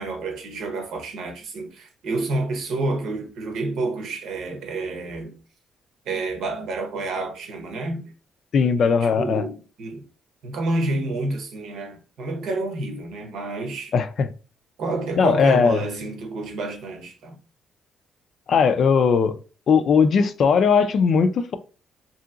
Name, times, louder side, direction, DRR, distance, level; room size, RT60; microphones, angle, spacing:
voice 1, 0.0-5.3 6.0-8.1 8.5-10.0 10.4-13.9 14.8-17.4, right 2 dB, 80° right, 0.8 m, -29 dB
voice 2, 8.5-9.4 13.9-14.3 15.2-15.8 18.5-19.4 19.7-21.6, left 6 dB, 60° left, 0.4 m, -19 dB
2.7 x 2.7 x 2.4 m
cardioid pair, 90°, 0 cm